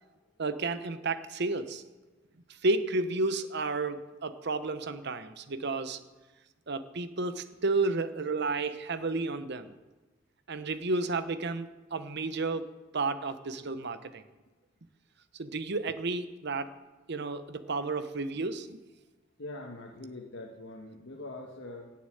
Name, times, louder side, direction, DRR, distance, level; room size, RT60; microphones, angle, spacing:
voice 1, 0.4-1.8 2.6-6.0 6.7-9.7 10.5-12.7 12.9-14.2 15.4-16.7 17.1-18.8, right 3 dB, 60° right, 12 dB, 0.9 m, -32 dB
voice 2, 19.4-21.9, left 2 dB, 65° left, -1 dB, 1.6 m, -43 dB
16.0 x 6.9 x 9.2 m, 1.2 s
head